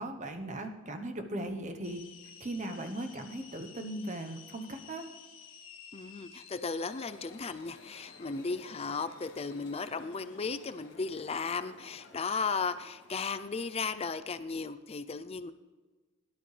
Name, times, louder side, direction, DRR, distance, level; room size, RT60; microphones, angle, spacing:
voice 1, 0.0-2.0 2.4-5.0, right 1 dB, 35° right, 6 dB, 1.0 m, -38 dB
sound 1, 1.8-10.9, left 7 dB, 85° left, 1.4 m, -54 dB
voice 2, 5.9-15.5, left 4 dB, 30° left, 12 dB, 0.5 m, -35 dB
sound 2, 6.8-14.1, left 2 dB, 60° left, 1.6 m, -55 dB
22.0 x 11.0 x 3.4 m, 1.3 s
head